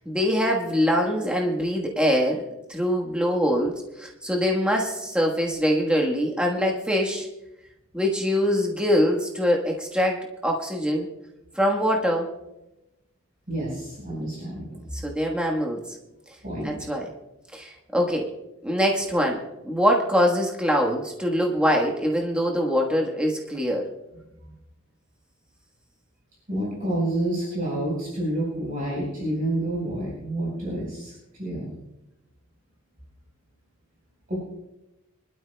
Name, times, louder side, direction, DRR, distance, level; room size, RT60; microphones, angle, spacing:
voice 1, 0.0-7.3 7.9-11.1 11.5-12.3 14.9-15.8 16.6-17.1 17.5-18.3 18.6-23.9, equal, 5° right, 0 dB, 1.3 m, -23 dB
voice 2, 13.5-14.8 16.4-16.7 26.5-31.1 31.4-31.7 34.3-34.4, right 1 dB, 40° right, -5 dB, 4.3 m, -28 dB
24.0 x 12.5 x 2.2 m, 0.93 s
head